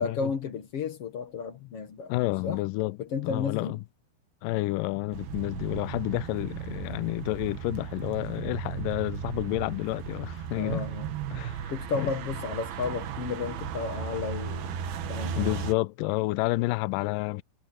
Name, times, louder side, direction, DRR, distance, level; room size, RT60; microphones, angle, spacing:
voice 1, 0.0-2.2 2.4-2.6 3.0-3.8 10.5-11.1 11.7-14.7 15.1-15.4, left 5 dB, 60° left, 1.6 m, -33 dB
voice 2, 2.1-3.0 3.2-3.8 4.4-10.8 11.3-11.7 12.0-12.1 15.4-17.4, left 20 dB, 85° left, 1.9 m, -30 dB
sound 1, 5.1-15.7, right 8 dB, 75° right, 3.4 m, -36 dB
omnidirectional pair, 4.6 m